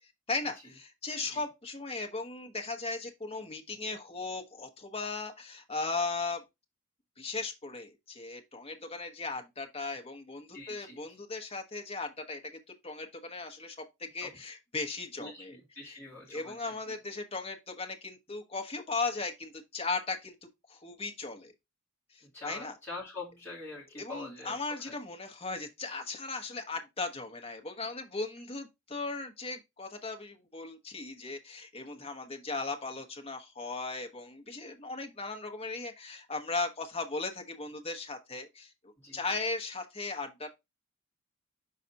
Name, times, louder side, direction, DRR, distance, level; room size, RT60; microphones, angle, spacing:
voice 1, 0.3-6.4 7.2-15.5 15.8-16.0 16.3-20.3 20.7-21.5 22.1-22.7 24.0-40.5, left 3 dB, 25° left, 1.1 m, -37 dB
voice 2, 10.5-11.0 14.2-14.3 15.2-16.9 22.3-24.9 31.9-32.1 39.0-39.2, left 2 dB, 10° left, 2.5 m, -45 dB
5.8 x 4.0 x 4.0 m
head